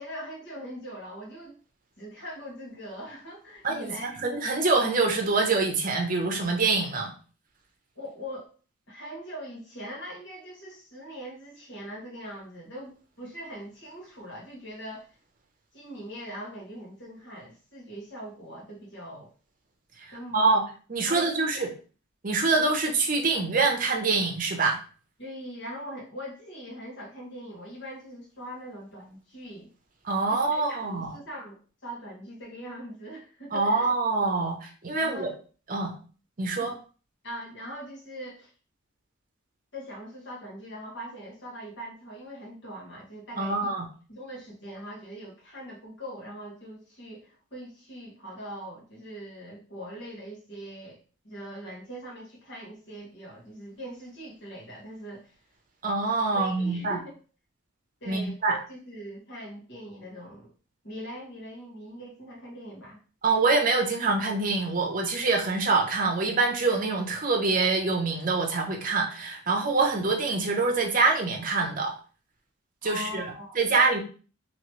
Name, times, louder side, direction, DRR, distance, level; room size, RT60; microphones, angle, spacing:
voice 1, 0.0-1.6 2.0-4.2 7.9-8.5 8.9-15.1 15.7-19.3 20.1-20.5 21.1-21.7 25.2-29.7 30.3-33.9 35.0-35.3 36.6-36.7 37.2-38.5 39.7-43.7 44.1-51.0 51.2-55.4 56.3-57.2 58.0-60.5 60.8-63.0 72.8-73.8, equal, 55° left, -4 dB, 1.5 m, -41 dB
voice 2, 3.6-7.1 20.3-20.6 20.9-21.7 22.2-24.8 30.0-31.1 33.5-35.3 35.7-36.0 36.4-36.7 43.4-43.9 55.8-57.0 58.1-58.6 63.2-71.9 72.8-73.2 73.6-74.0, right 3 dB, 40° right, 2 dB, 0.7 m, -25 dB
3.1 x 2.9 x 3.0 m, 0.38 s
head